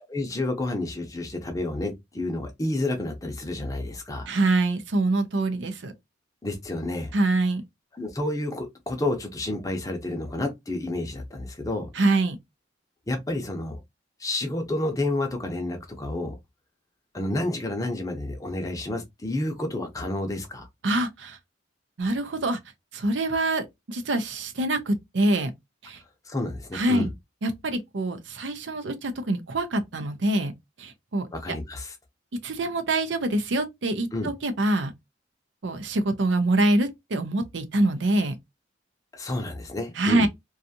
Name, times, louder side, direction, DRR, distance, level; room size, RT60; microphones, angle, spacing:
voice 1, 0.1-4.3 6.4-7.1 8.0-11.9 13.1-13.8 14.2-16.3 17.1-20.7 26.3-27.1 31.3-31.9 34.1-34.3 39.1-40.3, left 1 dB, 20° left, 0.6 m, -30 dB
voice 2, 4.3-5.9 7.1-7.6 11.9-12.4 20.8-21.4 22.0-22.6 22.9-25.5 25.8-26.0 26.7-27.1 27.4-30.5 30.8-31.3 32.4-34.9 35.6-38.3 40.0-40.3, right 2 dB, 70° right, 0.6 m, -25 dB
2.6 x 2.3 x 2.6 m
head